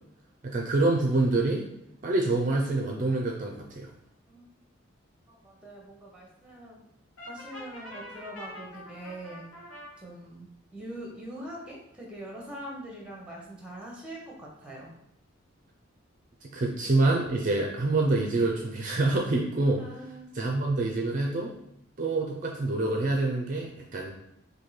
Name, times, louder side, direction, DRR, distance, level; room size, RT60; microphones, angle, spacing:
voice 1, 0.4-1.6 2.0-3.9 16.5-19.8 20.3-21.5 22.0-24.1, right 2 dB, 40° right, 0 dB, 0.4 m, -26 dB
voice 2, 5.3-6.8 7.3-9.5 10.0-14.9 19.8-20.4, right 1 dB, 5° right, -2 dB, 0.8 m, -43 dB
Brass instrument, 7.2-9.9, left 1 dB, 80° left, 1.4 m, -44 dB
4.4 x 2.7 x 3.1 m, 0.79 s
head